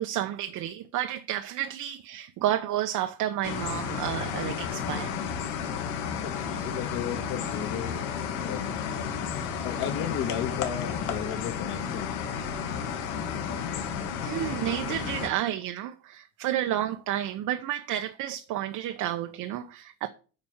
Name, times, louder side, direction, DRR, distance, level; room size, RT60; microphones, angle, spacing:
voice 1, 0.0-5.1 14.2-20.1, right 12 dB, 50° right, 0.8 m, -31 dB
sound 1, 3.4-15.3, left 7 dB, 90° left, 2.1 m, -32 dB
voice 2, 6.2-8.9 9.6-12.1, left 9 dB, 50° left, 1.7 m, -35 dB
8.9 x 5.1 x 7.1 m
cardioid pair, 145°, 41 cm